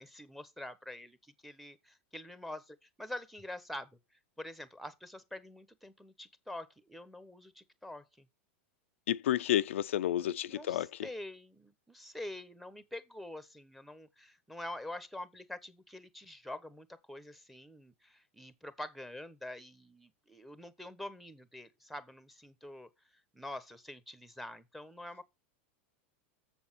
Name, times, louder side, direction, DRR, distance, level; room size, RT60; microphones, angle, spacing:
voice 1, 0.0-4.0 4.4-8.3 10.2-22.9 23.3-25.2, left 1 dB, ahead, 1.0 m, -46 dB
voice 2, 9.1-11.1, left 12 dB, 85° left, 0.4 m, -31 dB
7.2 x 7.0 x 5.6 m
hypercardioid pair, 120°, 7 cm